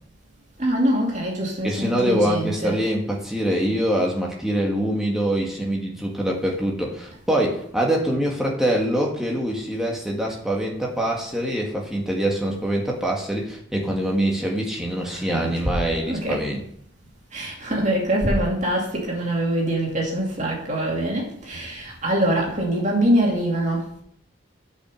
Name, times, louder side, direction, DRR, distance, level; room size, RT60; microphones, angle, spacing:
voice 1, 0.6-2.8 15.1-15.6 16.1-16.4 17.3-23.9, right 1 dB, 35° right, 2.4 m, -24 dB
voice 2, 1.6-16.6, right 1 dB, ahead, 1.8 m, -24 dB
8.4 x 5.7 x 6.4 m
head